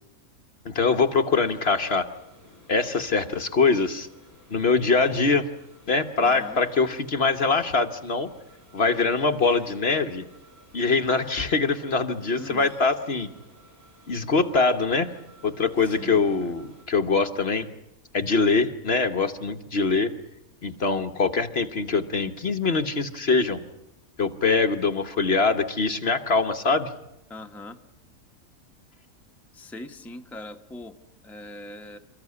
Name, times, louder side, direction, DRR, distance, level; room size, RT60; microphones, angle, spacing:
voice 1, 0.6-2.1 2.7-4.1 4.5-5.5 5.9-8.3 8.7-10.2 10.7-13.3 14.1-15.1 15.4-17.7 18.1-20.1 20.6-23.6 24.2-26.9, left 4 dB, 50° left, 7 dB, 1.2 m, -23 dB
sound 1, 0.8-16.9, equal, 85° right, 7.1 m, -54 dB
voice 2, 6.2-6.6 12.4-12.7 15.8-16.6 27.3-27.8 29.5-31.0 31.2-32.0, left 1 dB, ahead, 5 dB, 1.0 m, -41 dB
28.0 x 14.5 x 9.6 m, 0.93 s
omnidirectional pair, 1.5 m